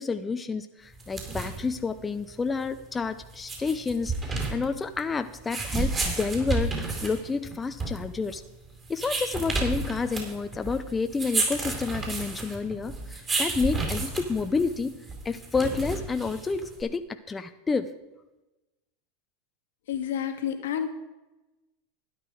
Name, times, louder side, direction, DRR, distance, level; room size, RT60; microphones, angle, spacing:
voice 1, 0.0-8.4 8.9-14.9 15.2-17.0 17.3-17.9, left 4 dB, 20° left, 8 dB, 0.7 m, -29 dB
sound 1, 0.9-16.8, right 3 dB, 30° right, 4.3 m, -32 dB
voice 2, 19.9-20.9, left 9 dB, 80° left, 6 dB, 1.7 m, -29 dB
12.5 x 10.0 x 4.7 m, 1.1 s
hypercardioid pair, 100°, 0 cm